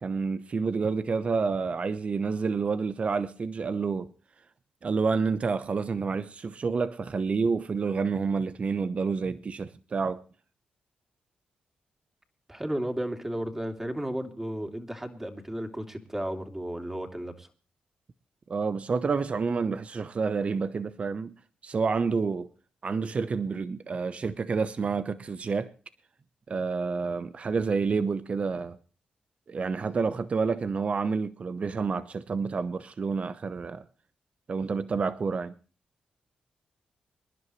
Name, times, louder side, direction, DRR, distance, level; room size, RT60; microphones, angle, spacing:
voice 1, 0.0-4.1 4.8-10.2 18.5-21.3 21.6-22.5 22.8-25.7 26.5-28.8 29.5-33.8 34.5-35.5, right 5 dB, 45° right, 0.9 m, -29 dB
voice 2, 12.5-17.5, right 1 dB, 15° right, 3.1 m, -33 dB
25.5 x 11.0 x 3.2 m
cardioid pair, 65°, 3 cm